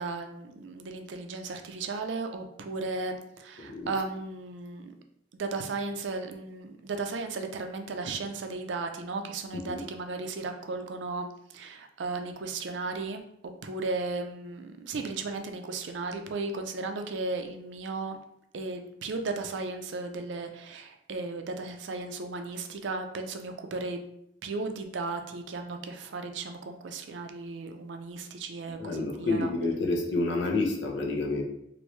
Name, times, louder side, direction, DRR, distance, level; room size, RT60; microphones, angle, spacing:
voice 1, 0.0-4.9 5.3-13.2 13.6-18.2 18.5-24.0 24.4-29.5, right 3 dB, 75° right, 5 dB, 0.4 m, -35 dB
voice 2, 3.6-3.9 9.5-9.8 28.6-31.4, left 2 dB, 70° left, 0 dB, 0.7 m, -29 dB
3.1 x 2.6 x 3.0 m, 0.74 s
head